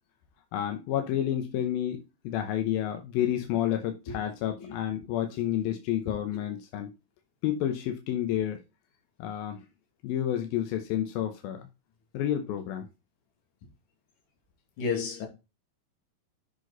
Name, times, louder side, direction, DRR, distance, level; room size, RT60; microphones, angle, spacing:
voice 1, 0.5-6.9 7.4-8.6 9.2-9.7 10.0-11.7 12.1-12.9, left 11 dB, 85° left, 2.8 m, -30 dB
voice 2, 14.8-15.3, left 5 dB, 60° left, 3.8 m, -31 dB
7.9 x 6.0 x 4.0 m
omnidirectional pair, 4.1 m